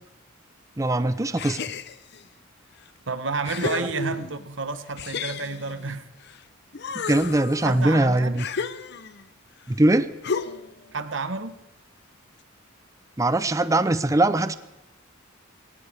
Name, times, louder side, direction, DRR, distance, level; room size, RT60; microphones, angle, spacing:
voice 1, 0.8-1.6 3.7-3.9 7.1-8.5 9.7-10.1 13.2-14.5, right 1 dB, 15° right, 0.6 m, -21 dB
sound 1, 1.4-2.2 2.9-3.0 3.4-4.5 5.0-6.4 6.7-9.3 10.2-10.8, left 5 dB, 55° left, 0.7 m, -33 dB
voice 2, 3.1-6.1 7.6-8.5 10.9-11.6, right 4 dB, 65° right, 1.1 m, -30 dB
21.5 x 17.5 x 3.5 m
head